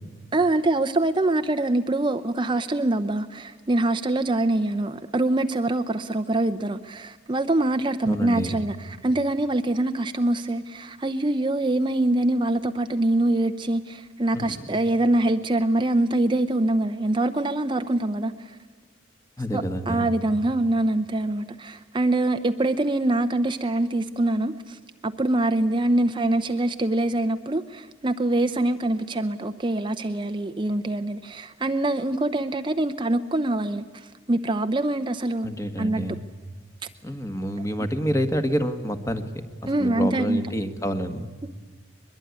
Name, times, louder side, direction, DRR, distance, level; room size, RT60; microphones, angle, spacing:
voice 1, 0.3-18.5 19.5-35.5 35.8-36.0 39.7-40.4, right 2 dB, 25° right, 8 dB, 0.6 m, -24 dB
voice 2, 8.0-8.5 14.3-14.7 19.4-20.1 35.4-36.2 37.0-39.3 39.6-41.3, equal, 15° left, 8 dB, 1.5 m, -28 dB
22.5 x 22.0 x 9.6 m, 1.5 s
head